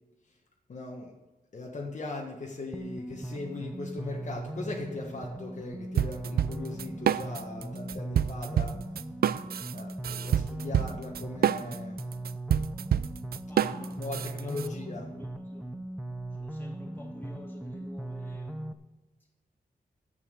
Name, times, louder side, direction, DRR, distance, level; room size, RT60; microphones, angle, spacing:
voice 1, 0.7-1.1 1.5-8.8 9.7-12.0 13.6-15.0, left 3 dB, 50° left, -1 dB, 1.4 m, -39 dB
sound 1, 2.7-18.7, right 1 dB, 5° right, 0.6 m, -39 dB
sound 2, 6.0-7.6 7.9-14.7, right 9 dB, 70° right, 0.4 m, -27 dB
voice 2, 13.5-14.8 15.1-15.7 16.4-18.6, left 1 dB, 10° left, -1 dB, 2.5 m, -50 dB
11.0 x 8.3 x 6.6 m, 1.1 s
wide cardioid pair, 160°, 16 cm